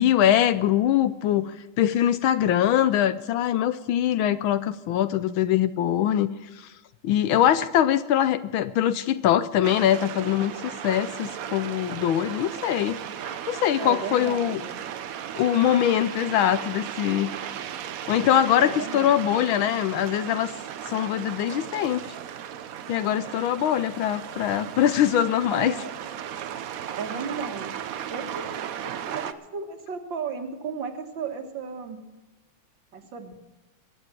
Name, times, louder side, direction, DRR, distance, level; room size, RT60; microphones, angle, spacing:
voice 1, 0.0-6.3 6.6-6.7 7.0-13.0 13.5-14.6 15.4-17.3 18.1-20.5 20.9-22.1 22.9-25.7, left 11 dB, 75° left, 13 dB, 1.4 m, -23 dB
sound 1, 9.6-29.3, right 9 dB, 90° right, 0.7 m, -36 dB
voice 2, 13.8-14.8 18.6-19.5 25.5-25.9 27.0-27.7 28.1-32.0 32.9-33.4, right 5 dB, 60° right, 5 dB, 2.1 m, -35 dB
22.0 x 7.9 x 6.0 m, 1.1 s
omnidirectional pair, 2.4 m